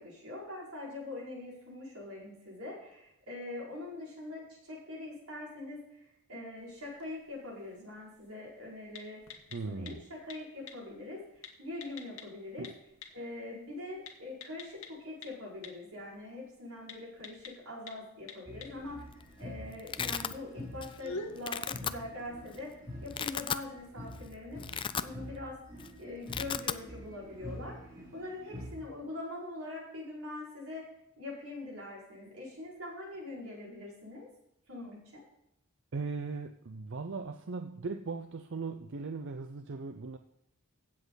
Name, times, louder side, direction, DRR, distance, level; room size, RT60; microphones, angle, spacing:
voice 1, 0.0-5.8 6.3-9.2 9.6-11.2 11.6-12.7 13.1-19.1 19.4-22.7 23.0-24.6 25.0-25.6 26.0-27.8 28.1-30.9 31.2-34.3 34.7-35.2, left 2 dB, 90° right, -5 dB, 5.4 m, -43 dB
sound 1, 6.6-24.8, left 3 dB, 75° left, 1.6 m, -51 dB
voice 2, 9.5-10.0 12.6-12.7 35.9-40.2, right 4 dB, 60° right, 7 dB, 0.6 m, -38 dB
sound 2, 18.5-28.9, equal, 20° right, 3.0 m, -47 dB
Domestic sounds home sounds, 18.9-19.2 19.5-20.3 20.8-21.1 21.4-21.9 22.5-22.6 23.0-23.7 24.1-24.2 24.5-25.5 25.7-25.9 26.1-26.8, left 7 dB, 25° left, 0.3 m, -35 dB
16.0 x 7.5 x 4.0 m, 0.82 s
head